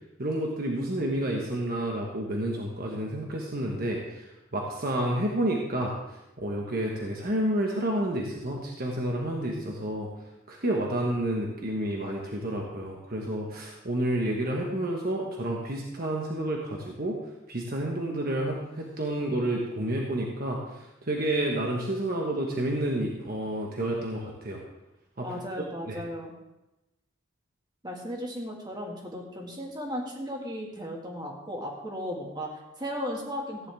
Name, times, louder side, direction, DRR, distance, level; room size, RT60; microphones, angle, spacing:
voice 1, 0.2-4.3 4.5-5.9 6.4-10.1 10.5-17.2 17.5-24.6 25.2-25.3 25.9-26.0, right 1 dB, 45° right, -1 dB, 1.3 m, -30 dB
voice 2, 25.2-26.3 27.8-33.7, equal, 20° right, 0 dB, 1.9 m, -36 dB
15.0 x 9.9 x 3.5 m, 0.97 s
head